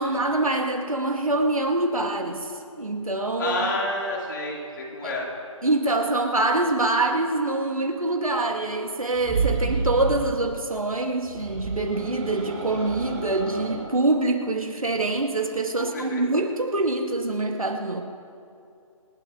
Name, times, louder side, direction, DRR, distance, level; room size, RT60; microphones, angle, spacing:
voice 1, 0.0-2.5 2.8-3.7 5.0-5.1 5.6-18.0, right 2 dB, 90° right, 3 dB, 2.0 m, -25 dB
voice 2, 3.4-5.3 15.9-16.2, left 2 dB, 40° left, -3 dB, 3.7 m, -29 dB
sound 1, 9.1-10.4 11.2-13.9, right 4 dB, 15° right, 2.0 m, -30 dB
27.5 x 11.5 x 3.1 m, 2.5 s
figure-of-eight pair, 155°, 17 cm